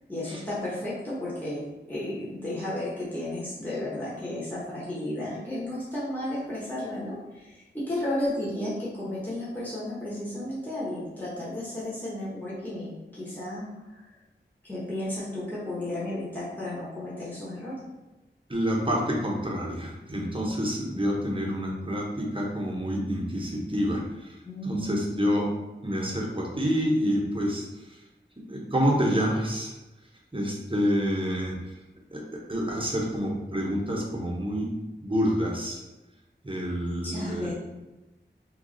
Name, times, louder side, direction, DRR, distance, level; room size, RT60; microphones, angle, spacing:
voice 1, 0.1-1.6 1.9-14.1 14.6-17.7 24.4-25.1 37.0-37.5, left 1 dB, 10° left, -9 dB, 1.0 m, -33 dB
voice 2, 18.5-24.4 24.6-25.5 25.8-28.0 28.5-29.7 30.3-31.7 32.1-34.7 35.0-35.8 36.4-37.5, equal, 25° right, -2 dB, 0.8 m, -28 dB
3.0 x 2.4 x 3.8 m, 1.1 s
wide cardioid pair, 50°, 20 cm